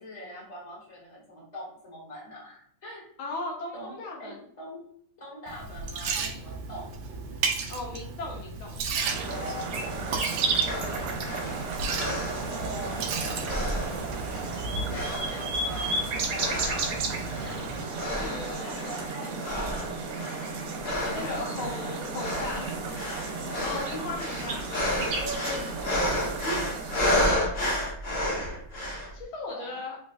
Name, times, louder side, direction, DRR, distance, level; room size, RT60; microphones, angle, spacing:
voice 1, 0.0-3.0 3.7-4.8 5.2-7.4 9.2-11.6 12.2-14.0 14.7-17.8 18.4-20.4 22.4-23.6 24.4-24.7 25.2-26.3 28.2-28.9 29.5-29.8, equal, 20° left, -5 dB, 1.3 m, -43 dB
voice 2, 3.2-4.4 7.7-8.8 18.1-18.8 21.1-22.7 23.6-24.7 29.1-30.0, left 2 dB, 75° left, -2 dB, 1.6 m, -37 dB
Liquid, 5.5-17.8, right 4 dB, 75° right, 1.2 m, -35 dB
sound 1, 9.0-27.3, right 4 dB, 90° right, 1.7 m, -33 dB
sound 2, 10.7-13.1 13.4-14.6 14.9-17.0 17.3-17.6 17.9-19.1 19.4-29.1, left 1 dB, 45° left, 0.8 m, -31 dB
3.9 x 3.2 x 2.3 m, 0.65 s
omnidirectional pair, 2.4 m